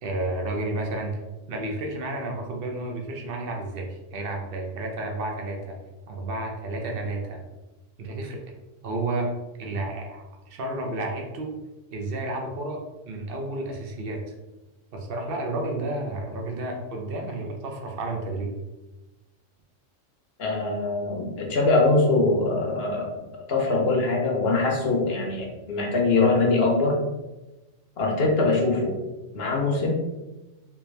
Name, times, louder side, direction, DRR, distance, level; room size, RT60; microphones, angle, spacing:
voice 1, 0.0-1.2 1.5-5.8 6.1-7.4 8.0-8.4 8.8-11.6 11.9-14.2 14.9-18.5, right 2 dB, 55° right, 1 dB, 0.8 m, -31 dB
voice 2, 20.4-27.0 28.0-29.0 29.3-30.0, left 3 dB, 55° left, -1 dB, 1.0 m, -23 dB
3.4 x 2.8 x 3.2 m, 1.1 s
omnidirectional pair, 1.3 m